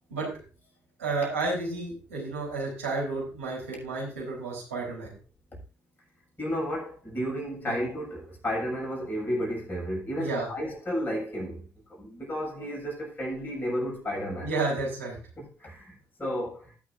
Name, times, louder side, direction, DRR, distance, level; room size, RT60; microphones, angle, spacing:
voice 1, 1.0-5.1 7.7-7.8 10.2-10.5 14.4-15.2, right 3 dB, 85° right, 3.8 m, -31 dB
voice 2, 6.4-14.5 15.4-16.8, equal, 25° left, 6.6 m, -32 dB
19.5 x 6.5 x 2.6 m
figure-of-eight pair, 45°, 7 cm